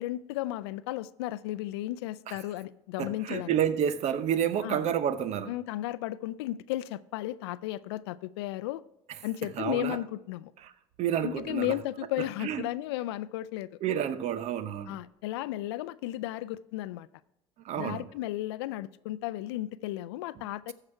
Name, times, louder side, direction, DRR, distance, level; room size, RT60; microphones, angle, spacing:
voice 1, 0.0-3.5 4.6-4.8 5.5-8.8 9.2-10.5 11.2-13.7 14.9-17.1 17.8-20.7, left 15 dB, 85° left, 0.4 m, -34 dB
voice 2, 3.0-5.5 9.6-10.0 11.0-11.8 12.4-12.7 13.8-15.0 17.6-18.1, right 9 dB, 60° right, 0.8 m, -29 dB
14.5 x 4.9 x 4.4 m
supercardioid pair, 80°, 13 cm